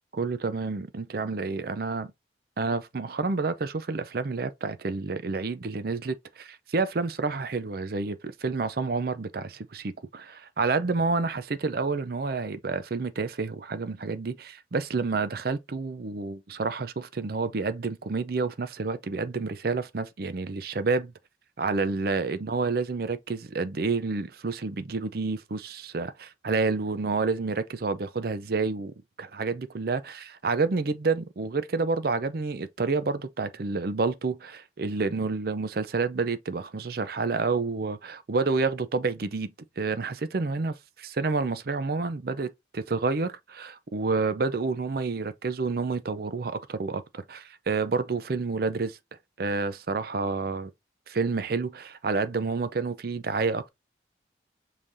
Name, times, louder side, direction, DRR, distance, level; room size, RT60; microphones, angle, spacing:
voice 1, 0.1-2.1 2.6-21.1 21.6-28.9 29.2-40.7 41.0-49.0 49.4-50.7 51.1-53.7, right 4 dB, 55° right, 0.5 m, -29 dB
5.6 x 3.3 x 2.6 m
head